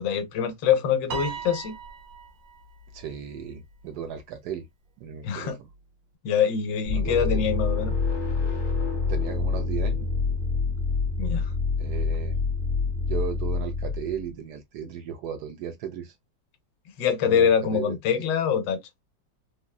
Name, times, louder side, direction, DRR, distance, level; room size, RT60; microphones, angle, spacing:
voice 1, 0.0-1.8 5.2-5.6 6.2-8.0 11.2-11.5 17.0-18.8, left 7 dB, 80° left, 1.3 m, -24 dB
Piano, 1.1-2.6, right 6 dB, 90° right, 1.5 m, -36 dB
voice 2, 2.9-4.7 5.0-5.5 6.9-7.4 9.1-10.0 11.8-12.3 13.1-16.1 17.2-18.0, right 8 dB, 70° right, 1.0 m, -35 dB
sound 1, 6.8-14.3, left 4 dB, 40° left, 0.8 m, -27 dB
3.6 x 2.1 x 2.2 m
omnidirectional pair, 2.0 m